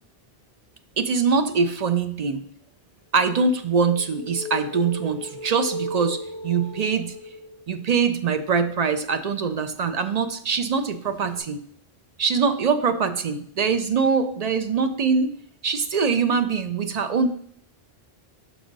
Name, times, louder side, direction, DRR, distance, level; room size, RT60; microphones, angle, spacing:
voice 1, 1.0-2.4 3.1-7.1 7.7-11.6 12.2-15.3 15.6-17.3, right 5 dB, 55° right, 9 dB, 0.5 m, -23 dB
sound 1, 3.5-8.0 11.2-11.4, equal, 30° left, 0.9 m, -36 dB
6.0 x 4.8 x 3.9 m, 0.62 s
omnidirectional pair, 1.0 m